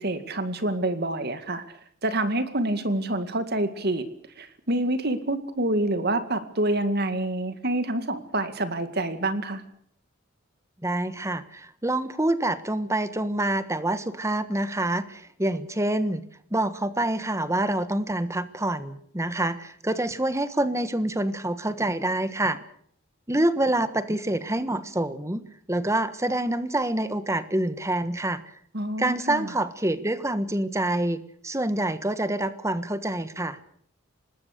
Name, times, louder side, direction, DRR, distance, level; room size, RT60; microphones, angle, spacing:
voice 1, 0.0-1.6 2.0-4.0 4.4-9.6 28.7-29.5, right 1 dB, 50° right, 10 dB, 2.1 m, -27 dB
voice 2, 10.8-16.2 16.5-22.6 23.3-25.4 25.7-28.4 29.0-33.6, right 1 dB, 15° right, 13 dB, 1.3 m, -26 dB
25.5 x 20.0 x 6.7 m, 0.64 s
head